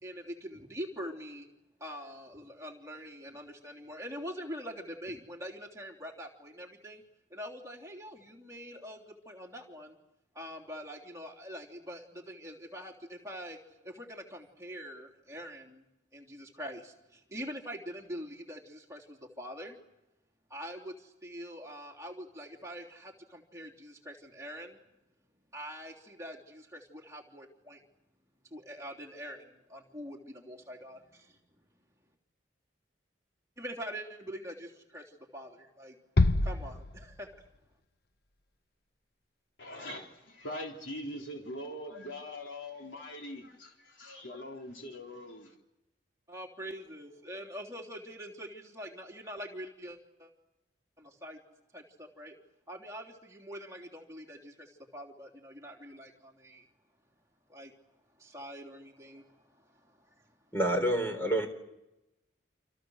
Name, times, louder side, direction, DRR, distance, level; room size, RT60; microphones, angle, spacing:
voice 1, 0.0-1.5 1.8-7.0 7.3-10.0 10.3-13.6 13.8-15.8 16.1-19.8 20.5-24.8 25.5-27.8 28.5-31.4 33.6-36.0 36.4-37.4 46.3-50.3 51.0-51.4 51.7-52.3 52.7-56.6 57.5-57.7 58.2-60.3, equal, 15° right, 3.5 m, -44 dB
Bass drum, 36.2-37.6, left 2 dB, 55° left, 1.0 m, -27 dB
voice 2, 39.6-45.5, left 1 dB, 80° left, 3.7 m, -42 dB
voice 3, 60.5-61.5, right 1 dB, 10° left, 4.2 m, -28 dB
29.0 x 27.5 x 6.6 m
head